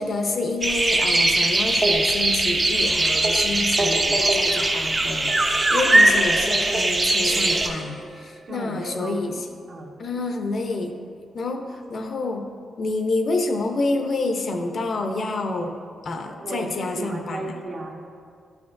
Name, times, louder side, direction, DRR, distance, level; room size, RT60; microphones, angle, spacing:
voice 1, 0.0-9.4 10.0-11.0 11.3-12.5 12.8-15.7 16.0-17.5, left 3 dB, 50° left, 4 dB, 0.6 m, -28 dB
sound 1, 0.6-7.7, right 2 dB, 25° right, 0.6 m, -20 dB
voice 2, 3.5-4.3 8.4-9.2 9.7-9.9 16.4-18.0, right 2 dB, 55° right, -2 dB, 1.2 m, -35 dB
sound 2, 7.2-8.8, right 3 dB, 75° right, 1.0 m, -38 dB
11.0 x 5.8 x 2.6 m, 2.2 s
cardioid pair, 130°, 0 cm